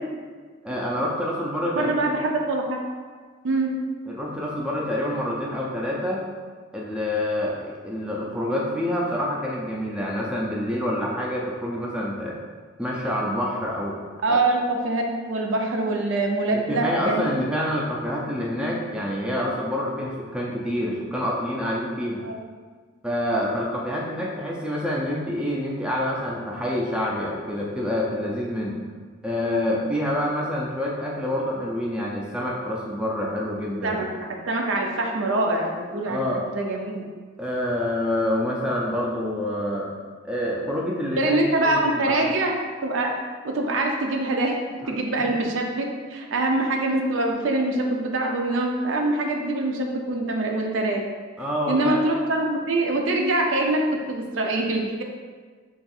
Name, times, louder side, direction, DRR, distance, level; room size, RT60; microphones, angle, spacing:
voice 1, 0.6-2.0 4.1-6.3 6.7-12.4 12.8-14.0 14.3-14.4 16.5-22.2 23.0-28.8 29.2-34.0 36.0-36.4 37.4-39.9 40.2-42.3 44.8-44.9 51.4-52.0, left 1 dB, 5° right, -3 dB, 0.4 m, -27 dB
voice 2, 1.7-2.8 3.4-3.7 14.2-17.2 22.2-22.4 33.8-34.0 34.5-37.1 41.2-43.2 43.4-51.0 51.7-53.8 54.1-55.0, right 2 dB, 70° right, 2 dB, 0.5 m, -24 dB
3.4 x 2.4 x 4.1 m, 1.6 s
head